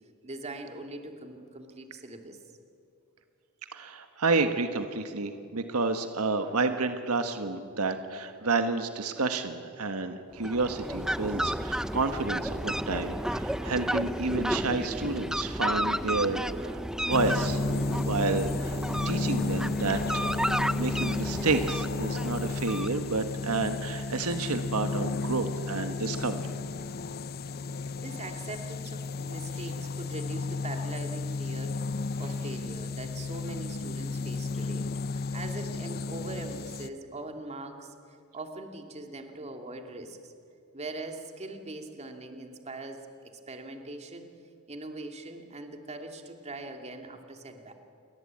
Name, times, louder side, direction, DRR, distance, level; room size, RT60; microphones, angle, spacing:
voice 1, 0.2-2.4 28.0-37.9 38.3-40.3 40.7-43.1 43.5-44.3 44.7-47.7, right 2 dB, 30° right, 4 dB, 2.5 m, -41 dB
voice 2, 3.7-17.6 17.9-18.8 19.0-20.2 20.8-26.5, right 3 dB, 85° right, 7 dB, 1.5 m, -30 dB
Fowl, 10.3-23.4, equal, 5° right, 0.6 m, -32 dB
sound 1, 17.1-36.9, left 3 dB, 45° left, 0.8 m, -33 dB
29.5 x 23.0 x 8.8 m, 2.5 s
head